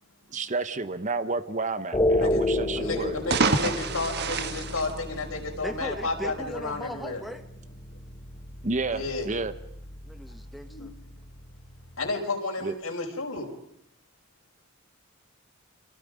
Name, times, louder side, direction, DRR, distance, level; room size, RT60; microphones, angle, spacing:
voice 1, 0.3-3.5 8.6-9.5 12.6-12.7, right 3 dB, 35° right, 12 dB, 1.0 m, -31 dB
sound 1, 1.9-12.1, left 1 dB, 20° left, 1.0 m, -32 dB
voice 2, 2.8-7.2 8.9-9.3 10.7-10.9 12.0-13.5, left 3 dB, 85° left, 0 dB, 5.8 m, -32 dB
sound 2, 3.1-5.7, right 4 dB, 55° right, 1.4 m, -28 dB
voice 3, 5.6-7.4 10.0-10.9, equal, ahead, 7 dB, 1.5 m, -38 dB
29.0 x 26.5 x 5.2 m, 0.76 s
head